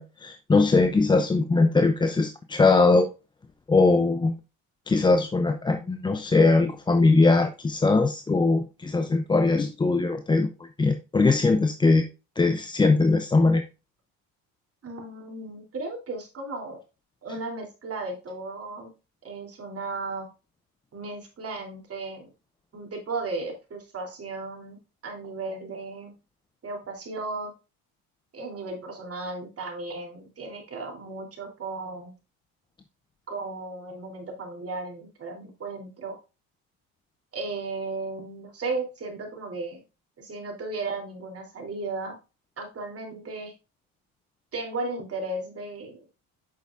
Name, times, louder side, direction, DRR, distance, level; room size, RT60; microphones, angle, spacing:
voice 1, 0.0-3.1 3.7-4.3 4.9-12.1 12.4-13.6, left 3 dB, 10° left, 7 dB, 0.4 m, -21 dB
voice 2, 14.8-16.8 17.2-18.9 19.2-20.3 20.9-22.3 22.7-26.1 26.6-27.5 28.3-32.1 33.3-36.1 37.3-39.8 40.2-42.2 42.6-43.5 44.5-46.0, right 3 dB, 30° right, 1 dB, 3.2 m, -35 dB
8.3 x 6.3 x 2.5 m, 0.29 s
supercardioid pair, 105°, 44 cm